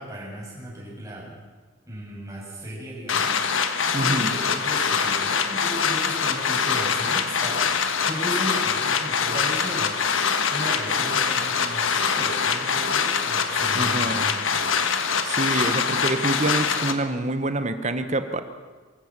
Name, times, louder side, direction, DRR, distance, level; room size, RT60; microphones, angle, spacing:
voice 1, 0.0-1.4 1.9-7.7 8.0-9.9 10.5-14.4, equal, 15° right, -4 dB, 7.0 m, -36 dB
sound 1, 3.1-16.9, left 6 dB, 85° left, 1.5 m, -24 dB
voice 2, 3.9-4.4 13.7-14.3 15.2-18.4, right 2 dB, 35° right, 10 dB, 1.3 m, -26 dB
24.0 x 14.5 x 7.5 m, 1.4 s
head